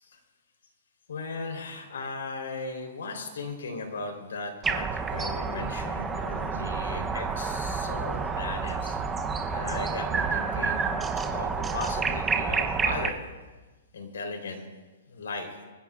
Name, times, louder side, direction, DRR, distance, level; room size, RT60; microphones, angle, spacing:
voice 1, 1.1-9.0 9.5-10.9 11.2-13.2 13.9-14.6 15.1-15.5, left 3 dB, 85° left, 3 dB, 3.7 m, -37 dB
sound 1, 4.6-13.1, right 5 dB, 10° right, 0.8 m, -29 dB
24.5 x 15.5 x 2.5 m, 1.2 s
hypercardioid pair, 155°, 0 cm